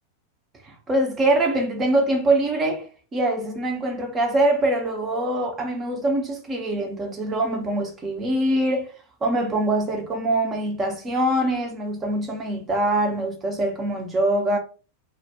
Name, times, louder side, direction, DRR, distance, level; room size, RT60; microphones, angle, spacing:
voice 1, 0.6-2.9 3.1-8.9 9.2-14.6, right 1 dB, 20° right, 0.7 m, -23 dB
2.2 x 2.2 x 2.7 m
figure-of-eight pair, 90°, 0 cm